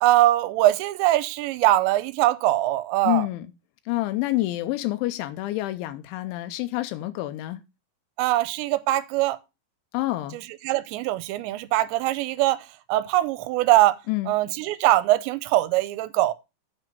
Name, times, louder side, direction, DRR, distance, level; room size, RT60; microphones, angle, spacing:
voice 1, 0.0-3.3 8.2-9.4 10.3-14.0 14.3-16.3, right 15 dB, 85° right, 2.8 m, -22 dB
voice 2, 3.0-3.5 3.9-7.6 9.9-10.4 14.1-14.3, left 17 dB, 85° left, 3.0 m, -27 dB
8.2 x 6.2 x 5.3 m
omnidirectional pair, 5.3 m